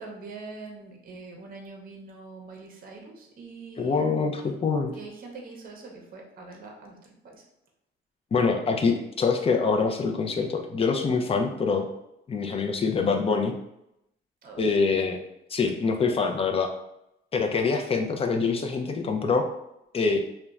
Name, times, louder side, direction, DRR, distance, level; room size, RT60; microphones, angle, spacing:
voice 1, 0.0-4.5 4.8-7.0 7.2-7.4 14.4-14.6, right 3 dB, 45° right, 1 dB, 0.7 m, -43 dB
voice 2, 3.8-4.9 8.3-11.9 12.3-13.5 14.6-15.2 15.5-16.7 17.3-19.5 19.9-20.2, left 4 dB, 30° left, 4 dB, 0.4 m, -25 dB
2.8 x 2.1 x 2.3 m, 0.83 s
cardioid pair, 90°, 20 cm